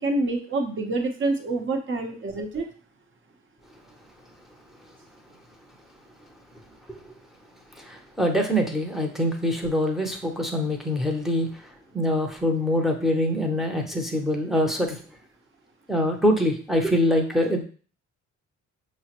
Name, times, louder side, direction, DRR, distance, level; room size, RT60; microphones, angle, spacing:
voice 1, 0.0-2.7, right 2 dB, 40° right, 4 dB, 0.8 m, -27 dB
voice 2, 7.8-15.0 15.9-17.6, left 1 dB, ahead, 1 dB, 0.7 m, -24 dB
5.5 x 2.1 x 2.9 m, 0.40 s
cardioid pair, 90°, 30 cm